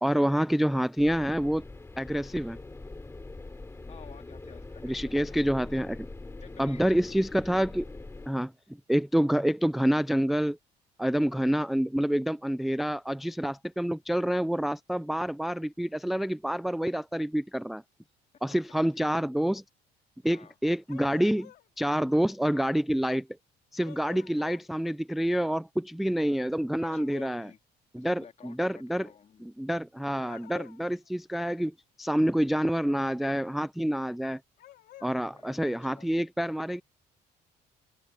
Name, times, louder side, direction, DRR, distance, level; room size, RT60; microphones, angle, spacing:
voice 1, 0.0-1.7 2.0-2.6 4.8-6.1 6.6-7.9 8.3-8.5 8.9-10.6 11.0-17.8 18.4-19.6 20.2-21.5 21.8-23.3 23.7-27.5 27.9-29.1 29.4-34.4 35.0-36.8, equal, ahead, 0.4 m, -27 dB
sound 1, 1.0-8.3, left 2 dB, 15° left, 2.8 m, -43 dB
voice 2, 3.9-5.5 6.4-7.2 8.2-8.3 20.3-20.6 22.0-22.2 26.7-27.6 27.9-29.5 35.3-36.1, left 7 dB, 45° left, 3.6 m, -53 dB
sound 2, 20.9-21.7 23.8-24.7 26.8-27.4 30.2-30.9 34.6-35.2, left 14 dB, 70° left, 5.0 m, -50 dB
cardioid pair, 110°, 17 cm